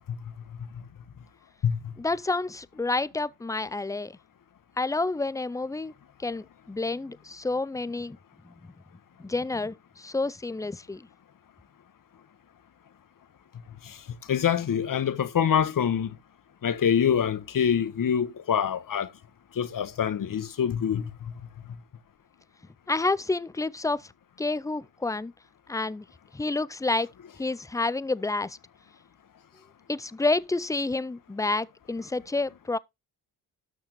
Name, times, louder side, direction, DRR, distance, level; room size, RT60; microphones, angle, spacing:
voice 1, 2.0-4.2 4.8-5.9 6.2-8.2 8.4-8.5 9.2-11.1 22.9-24.1 24.4-25.3 25.7-26.1 26.3-27.1 27.4-28.6 29.9-32.8, left 3 dB, 10° left, 0.4 m, -29 dB
voice 2, 14.3-16.1 16.6-19.1 19.6-21.0, left 8 dB, 50° left, 1.3 m, -25 dB
12.5 x 6.5 x 3.1 m
supercardioid pair, 65°, 43 cm